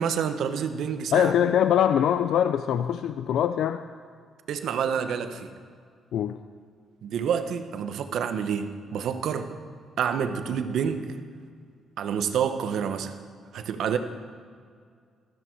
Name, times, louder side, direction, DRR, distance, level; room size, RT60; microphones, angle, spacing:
voice 1, 0.0-1.3 4.5-5.6 7.0-9.5 10.0-11.2 12.0-13.2 13.5-14.0, right 7 dB, 70° right, 9 dB, 0.9 m, -28 dB
voice 2, 1.1-3.8 6.1-6.4, left 9 dB, 75° left, 10 dB, 0.4 m, -23 dB
16.0 x 13.5 x 4.6 m, 2.1 s
cardioid pair, 90°, 0 cm